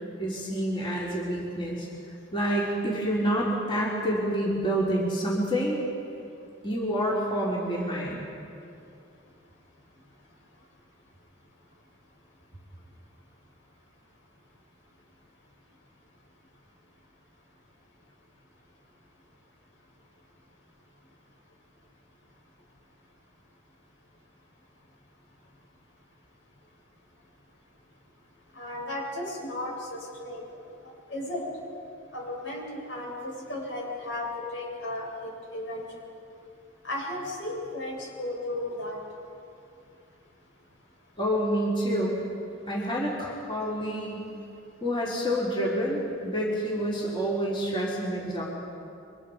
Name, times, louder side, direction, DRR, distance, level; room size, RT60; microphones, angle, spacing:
voice 1, 0.2-1.9 2.3-5.8 6.6-8.3 41.2-42.2 42.7-44.2 44.8-48.4, equal, 25° left, -5 dB, 3.7 m, -28 dB
voice 2, 28.6-30.4 31.1-31.4 32.1-35.8 36.8-39.0, left 1 dB, 75° left, -2 dB, 7.7 m, -34 dB
29.5 x 24.5 x 5.2 m, 2.5 s
head